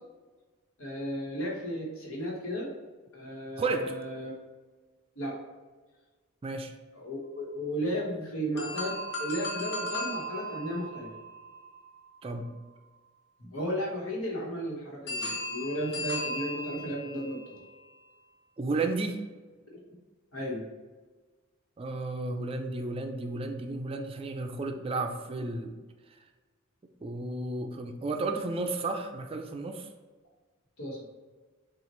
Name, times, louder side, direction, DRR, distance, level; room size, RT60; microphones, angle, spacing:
voice 1, 0.8-2.7 3.1-4.3 5.2-5.3 6.9-8.9 9.2-11.1 13.4-17.6 19.7-19.8 20.3-20.6 30.8-31.0, equal, 90° left, -2 dB, 1.3 m, -34 dB
voice 2, 3.6-3.9 6.4-6.7 12.2-12.5 18.6-19.2 21.8-25.7 27.0-29.9, right 3 dB, 25° right, 5 dB, 0.4 m, -32 dB
sound 1, 8.6-12.6 15.1-17.4, left 1 dB, 55° left, 1.0 m, -37 dB
7.0 x 2.5 x 3.1 m, 1.4 s
head